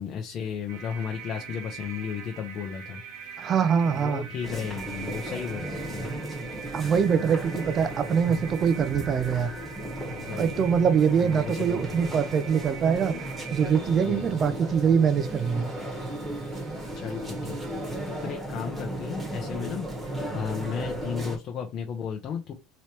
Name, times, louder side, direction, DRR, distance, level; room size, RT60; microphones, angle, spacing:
voice 1, 0.0-3.0 3.9-6.1 10.1-10.8 11.2-12.1 14.0-14.4 16.9-22.5, left 7 dB, 40° left, 0.6 m, -34 dB
sound 1, 0.7-18.3, right 6 dB, 55° right, 1.0 m, -43 dB
voice 2, 3.4-4.3 6.7-9.5 10.3-13.1 13.5-15.7, right 7 dB, 35° right, 0.5 m, -23 dB
sound 2, 4.4-21.4, right 1 dB, 10° right, 1.2 m, -35 dB
3.2 x 3.0 x 2.8 m
supercardioid pair, 130°, 0 cm